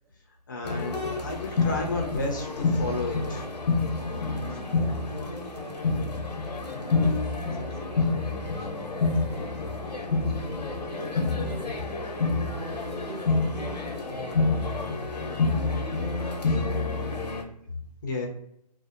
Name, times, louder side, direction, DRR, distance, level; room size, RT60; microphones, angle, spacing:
voice 1, 0.5-3.4 18.0-18.3, left 3 dB, 30° left, 0.4 m, -31 dB
sound 1, 0.6-17.4, left 3 dB, 90° left, 0.7 m, -28 dB
voice 2, 4.0-6.1 6.7-9.7 10.3-12.0 12.3-15.0 17.6-17.8, equal, 15° right, 0.7 m, -44 dB
2.6 x 2.0 x 2.4 m
hypercardioid pair, 160°, 21 cm